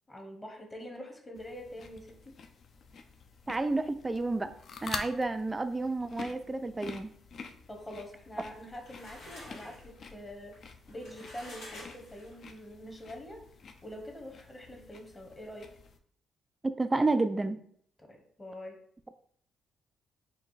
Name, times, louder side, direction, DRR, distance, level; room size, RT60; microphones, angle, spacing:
voice 1, 0.1-2.3 7.7-13.4 13.8-15.7 18.0-18.7, equal, 20° left, 2 dB, 1.0 m, -45 dB
sound 1, 1.3-16.0, left 5 dB, 55° left, 0.5 m, -48 dB
voice 2, 3.5-4.5 4.8-7.1 16.6-17.6, right 2 dB, 20° right, 10 dB, 0.3 m, -30 dB
sound 2, 8.4-12.6, left 1 dB, 80° left, 1.9 m, -50 dB
4.3 x 2.5 x 4.0 m, 0.63 s
cardioid pair, 90°, 0 cm